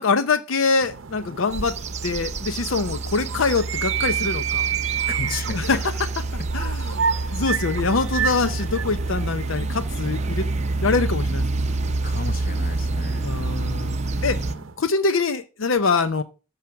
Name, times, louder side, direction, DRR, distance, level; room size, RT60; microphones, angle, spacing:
voice 1, 0.0-4.7 5.5-5.9 6.5-10.5 10.8-12.0 13.2-14.4 14.8-16.2, left 4 dB, 80° left, 0.7 m, -24 dB
sound 1, 0.8-14.8, right 8 dB, 75° right, 0.7 m, -31 dB
sound 2, 1.5-14.6, right 2 dB, 35° right, 0.6 m, -27 dB
voice 2, 5.1-5.7 7.1-7.4 12.0-13.5 14.1-14.7, left 3 dB, 45° left, 1.0 m, -34 dB
13.5 x 4.9 x 5.8 m
head